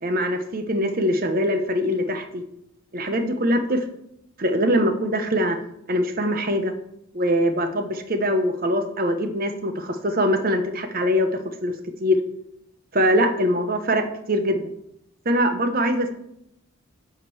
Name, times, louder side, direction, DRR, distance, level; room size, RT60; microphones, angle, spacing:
voice 1, 0.0-2.4 2.9-3.8 4.4-5.6 5.9-6.7 7.1-11.3 11.6-11.7 12.0-12.2 12.9-14.7 15.2-16.1, equal, 40° right, 8 dB, 1.0 m, -22 dB
8.1 x 5.2 x 7.1 m, 0.77 s
head